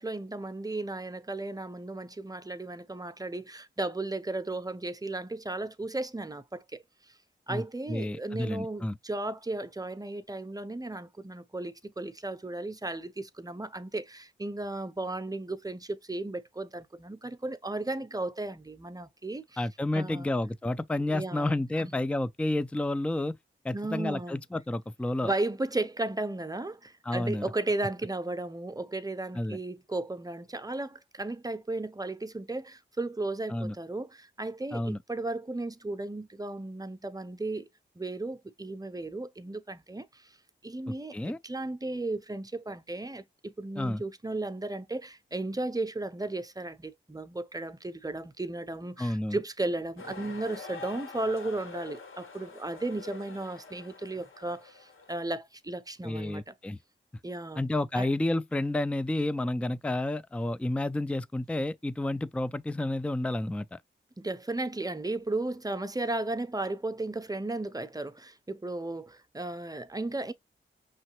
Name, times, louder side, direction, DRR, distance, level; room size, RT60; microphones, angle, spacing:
voice 1, 0.0-6.8 7.5-19.6 19.9-20.3 21.0-21.9 23.7-24.4 25.2-37.7 38.0-40.3 40.6-56.5 57.2-57.6 58.0-58.1 64.2-70.3, right 2 dB, 20° right, 0.7 m, -35 dB
voice 2, 7.9-9.0 19.6-23.4 23.6-25.3 27.1-27.5 29.3-29.6 33.5-33.7 34.7-35.0 40.9-41.4 43.8-44.0 49.0-49.4 56.0-56.8 57.6-63.8, left 1 dB, 5° left, 0.4 m, -30 dB
sound 1, 50.0-55.2, left 4 dB, 85° left, 1.6 m, -46 dB
5.4 x 3.2 x 2.9 m
cardioid pair, 55°, 20 cm